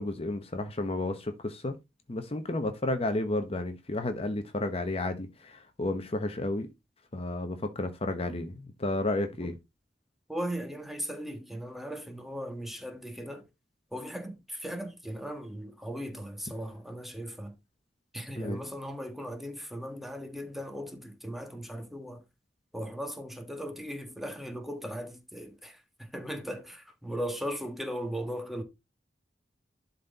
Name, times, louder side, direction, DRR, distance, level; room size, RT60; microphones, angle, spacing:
voice 1, 0.0-1.8 2.1-6.7 7.1-9.5 18.4-18.6, left 2 dB, 35° left, 0.9 m, -32 dB
voice 2, 10.3-13.5 13.9-17.5 18.1-22.2 22.7-28.6, equal, ahead, 1.5 m, -38 dB
11.5 x 4.2 x 4.0 m
head